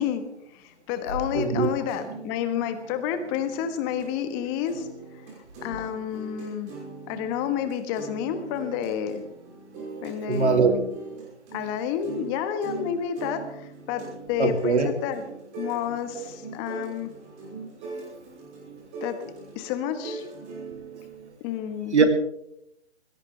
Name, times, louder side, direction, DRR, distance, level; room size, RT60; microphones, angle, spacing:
voice 1, 0.0-4.9 5.2-6.7 7.1-9.2 10.0-10.9 11.5-15.2 15.6-17.1 19.0-20.3 21.4-22.0, left 9 dB, 20° left, 9 dB, 1.4 m, -30 dB
voice 2, 1.3-1.7 10.3-10.7 14.4-14.9 16.2-16.3 21.9-22.1, right 5 dB, 70° right, 6 dB, 2.9 m, -21 dB
sound 1, 1.6-4.1 4.5-21.3, right 4 dB, 20° right, 5.8 m, -41 dB
22.0 x 17.0 x 3.4 m, 0.75 s
figure-of-eight pair, 145°, 35 cm